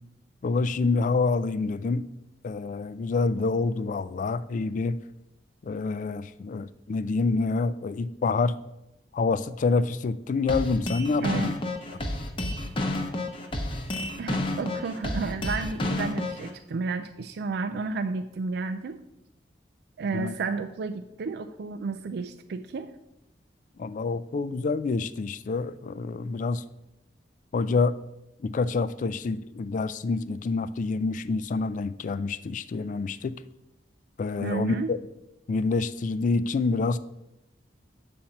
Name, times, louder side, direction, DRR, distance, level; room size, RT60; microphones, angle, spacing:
voice 1, 0.4-2.1 2.4-5.0 5.6-8.5 9.1-11.5 20.1-20.3 23.8-26.6 27.5-28.0 28.4-33.4 34.2-35.0 35.5-37.0, left 4 dB, 45° left, 15 dB, 0.3 m, -27 dB
sound 1, 10.5-16.5, left 1 dB, 30° left, 0.8 m, -30 dB
voice 2, 11.2-11.6 14.2-19.0 20.0-22.9 34.4-34.9, right 4 dB, 65° right, 8 dB, 0.4 m, -32 dB
7.1 x 4.3 x 6.4 m, 0.91 s
head